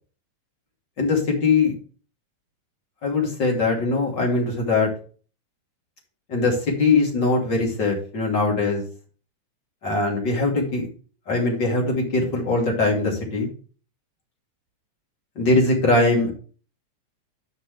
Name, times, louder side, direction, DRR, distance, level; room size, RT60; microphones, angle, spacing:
voice 1, 1.0-1.7 3.0-4.9 6.3-8.8 9.8-10.9 11.3-13.5 15.4-16.3, left 3 dB, 40° left, -1 dB, 3.2 m, -21 dB
9.5 x 6.2 x 3.4 m, 0.38 s
omnidirectional pair, 3.3 m